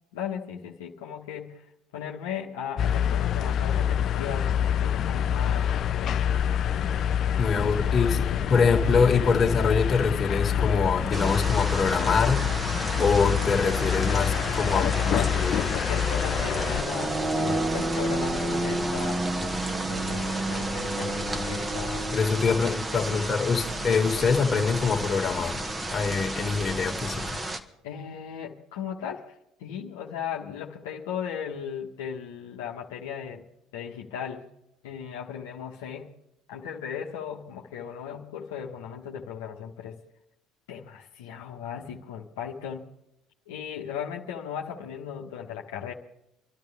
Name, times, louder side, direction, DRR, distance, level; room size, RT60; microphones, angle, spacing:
voice 1, 0.1-1.6 1.9-6.5 7.5-8.2 8.6-8.7 14.7-19.2 19.9-22.1 23.1-23.3 27.8-29.2 29.6-33.4 33.7-34.5 34.8-36.1 36.5-40.0 40.7-42.9 43.5-45.9, left 8 dB, 80° left, -1 dB, 1.3 m, -37 dB
sound 1, 2.8-16.8, left 9 dB, 50° left, 0.6 m, -26 dB
voice 2, 7.4-12.5 13.0-15.6 22.1-25.6 25.9-27.4, left 5 dB, 35° left, 2 dB, 2.2 m, -24 dB
sound 2, 7.4-27.3, left 3 dB, 15° left, 1.2 m, -40 dB
sound 3, 11.1-27.6, right 2 dB, 20° right, 1.5 m, -31 dB
26.0 x 12.5 x 3.5 m, 0.80 s
hypercardioid pair, 65°, 0 cm